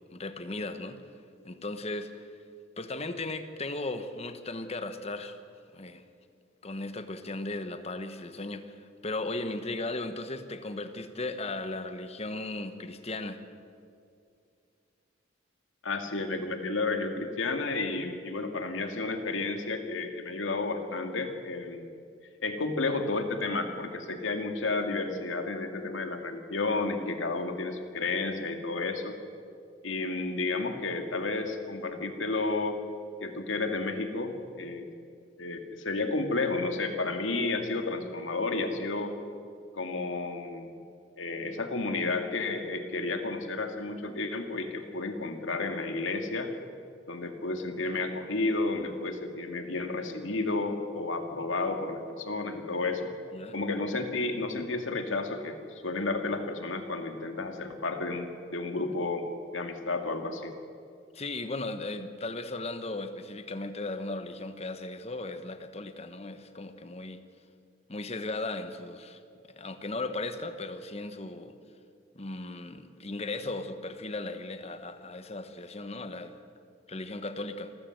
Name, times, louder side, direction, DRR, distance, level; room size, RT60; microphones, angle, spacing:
voice 1, 0.1-1.0 1.4-2.1 2.8-5.4 5.7-6.0 6.6-13.4 53.3-53.5 61.1-67.2 67.9-69.2 69.6-71.5 72.1-76.4 76.9-77.7, left 2 dB, 35° left, 9 dB, 1.2 m, -36 dB
voice 2, 15.8-21.9 22.4-29.2 29.8-32.8 33.2-34.9 35.4-39.2 39.7-40.8 41.2-46.5 47.1-53.1 53.5-60.5, left 3 dB, 90° left, 5 dB, 2.1 m, -32 dB
26.5 x 14.0 x 7.8 m, 2.4 s
head